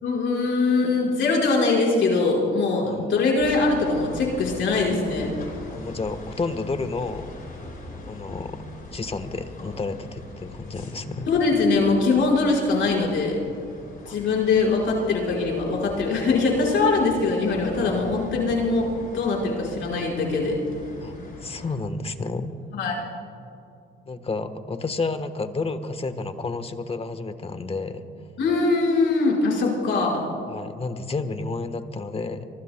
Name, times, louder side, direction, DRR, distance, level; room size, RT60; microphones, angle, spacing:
voice 1, 0.0-5.3 11.3-13.4 14.1-20.6 22.7-23.0 28.4-30.3, left 3 dB, 70° left, -3 dB, 4.9 m, -22 dB
sound 1, 3.4-21.7, left 2 dB, 45° left, 5.0 m, -41 dB
voice 2, 5.7-7.3 8.0-8.6 8.9-11.3 14.1-14.2 21.0-21.1 21.4-22.5 24.1-28.0 30.5-32.4, left 3 dB, 30° left, 10 dB, 1.1 m, -31 dB
24.5 x 24.0 x 2.2 m, 2.5 s
cardioid pair, 90°, 20 cm